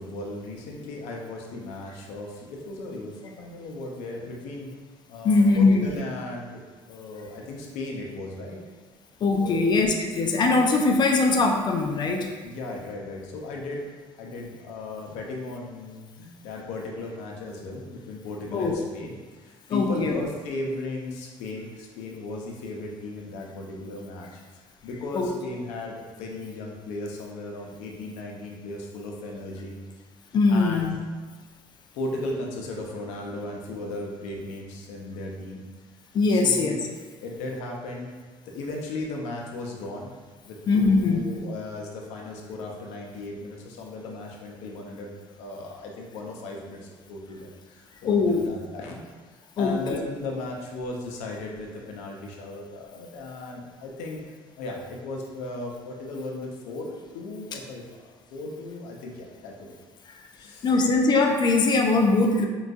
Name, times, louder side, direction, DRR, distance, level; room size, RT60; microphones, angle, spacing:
voice 1, 0.0-4.7 5.1-6.6 6.9-8.6 9.4-9.7 12.4-13.9 14.2-24.3 24.8-29.8 30.5-30.9 31.9-35.6 36.3-36.8 37.2-38.1 38.5-40.1 40.5-45.1 45.4-49.0 49.6-54.2 54.6-59.7 60.3-60.7, left 2 dB, 80° left, 0 dB, 0.6 m, -36 dB
voice 2, 5.2-5.8 9.2-12.3 18.5-18.7 19.7-20.2 25.1-25.3 30.3-31.0 36.1-36.8 40.7-41.2 48.0-48.5 49.6-49.8 60.6-62.5, left 3 dB, 40° left, 3 dB, 0.4 m, -21 dB
3.8 x 2.3 x 2.6 m, 1.4 s
cardioid pair, 105°, 12 cm